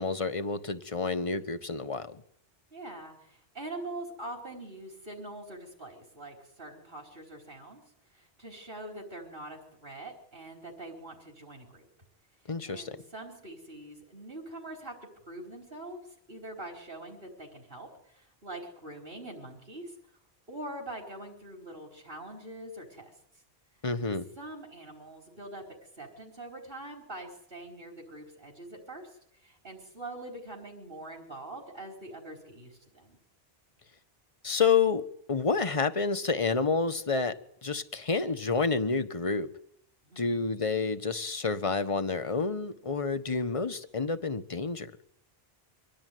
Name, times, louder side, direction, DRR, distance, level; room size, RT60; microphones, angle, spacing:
voice 1, 0.0-2.2 12.5-13.0 23.8-24.3 34.4-39.5 40.2-44.9, left 4 dB, 30° left, 1.3 m, -29 dB
voice 2, 2.7-7.8 8.1-11.9 12.7-15.0 15.3-19.9 20.5-23.2 24.4-25.6 25.9-33.2 40.0-40.5, right 1 dB, 60° right, 4.9 m, -44 dB
25.0 x 17.5 x 9.4 m
omnidirectional pair, 1.0 m